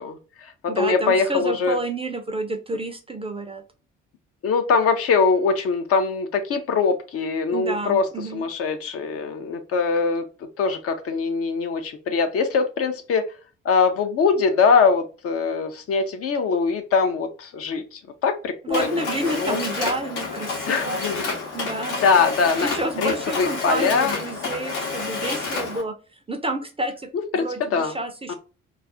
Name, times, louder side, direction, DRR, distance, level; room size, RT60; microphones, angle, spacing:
voice 1, 0.0-1.8 4.4-8.1 8.3-10.3 10.6-13.3 13.6-19.6 20.7-21.2 22.0-22.7 23.0-24.2 27.3-27.9 28.3-28.4, left 5 dB, 40° left, 7 dB, 0.5 m, -22 dB
voice 2, 0.7-3.6 7.5-8.5 18.6-21.0 21.5-22.0 22.6-27.1 27.3-28.3, right 2 dB, 15° right, 5 dB, 0.5 m, -29 dB
Mechanisms, 18.7-25.8, left 4 dB, 70° left, 0.9 m, -29 dB
2.3 x 2.3 x 3.7 m, 0.35 s
figure-of-eight pair, 45°, 37 cm